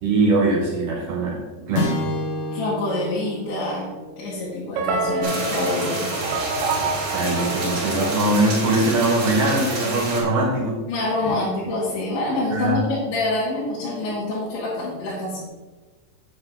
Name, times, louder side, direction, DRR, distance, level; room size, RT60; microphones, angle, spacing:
voice 1, 0.0-1.4 1.7-1.9 7.1-10.8 12.5-12.8, right 2 dB, 65° right, -4 dB, 3.9 m, -21 dB
sound 1, 1.7-6.2, left 1 dB, 65° left, 2.2 m, -31 dB
voice 2, 2.5-3.9 4.2-6.2 10.9-15.4, left 2 dB, 90° left, -9 dB, 4.4 m, -26 dB
sound 2, 4.8-9.1, right 3 dB, 90° right, 3.1 m, -27 dB
sound 3, 5.2-10.2, right 2 dB, 45° right, 4.3 m, -29 dB
9.4 x 7.8 x 3.8 m, 1.3 s
omnidirectional pair, 5.0 m